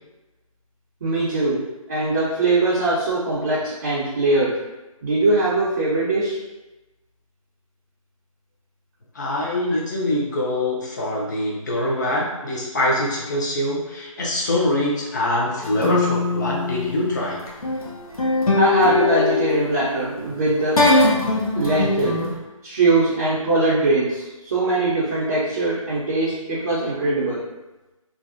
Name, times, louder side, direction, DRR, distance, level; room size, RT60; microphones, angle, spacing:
voice 1, 1.0-1.6 1.9-4.6 5.0-6.4 18.6-20.8 21.5-22.2 22.6-27.4, right 2 dB, 30° right, -8 dB, 0.5 m, -21 dB
voice 2, 9.1-17.4, left 1 dB, 35° left, -3 dB, 0.5 m, -24 dB
sound 1, 15.6-22.4, left 3 dB, 85° left, 0.7 m, -22 dB
2.5 x 2.0 x 2.5 m, 1.1 s
figure-of-eight pair, 150°, 18 cm